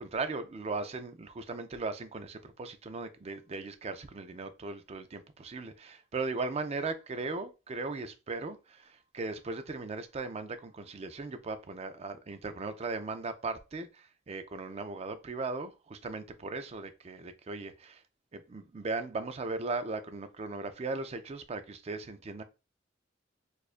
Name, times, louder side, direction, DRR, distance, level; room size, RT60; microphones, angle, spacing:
voice 1, 0.0-18.0 18.3-22.4, right 3 dB, 35° right, 0.4 m, -38 dB
4.3 x 2.5 x 2.4 m
head